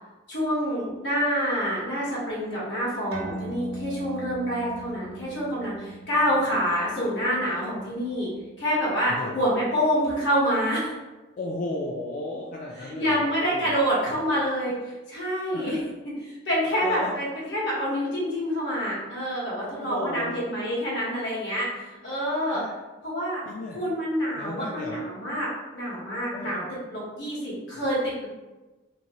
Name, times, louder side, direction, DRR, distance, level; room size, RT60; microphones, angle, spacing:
voice 1, 0.3-8.3 8.6-10.9 12.8-14.7 15.1-15.8 16.2-22.6 23.0-23.4 23.7-26.6 26.9-28.3, equal, 80° left, -6 dB, 1.3 m, -27 dB
sound 1, 3.1-10.0, right 2 dB, 65° right, 0.8 m, -41 dB
voice 2, 9.1-9.4 11.4-13.8 15.5-15.8 16.8-17.1 19.7-20.4 22.5-22.7 23.5-23.8 24.3-25.0 26.3-26.7, left 2 dB, 50° left, -2 dB, 0.3 m, -34 dB
3.0 x 2.6 x 2.9 m, 1.2 s
head